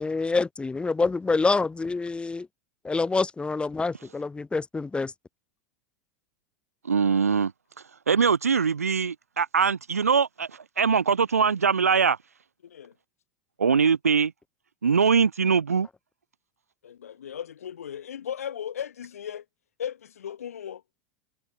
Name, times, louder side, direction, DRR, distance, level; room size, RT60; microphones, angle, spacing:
voice 1, 0.0-2.5 2.8-5.1, left 3 dB, 15° left, 1.4 m, -26 dB
voice 2, 6.8-7.5 8.1-12.2 13.6-14.3 14.8-15.9, right 6 dB, 90° right, 1.0 m, -22 dB
voice 3, 12.6-12.9 16.8-19.4 19.8-20.8, left 9 dB, 80° left, 1.9 m, -36 dB
hypercardioid pair, 90°, 8 cm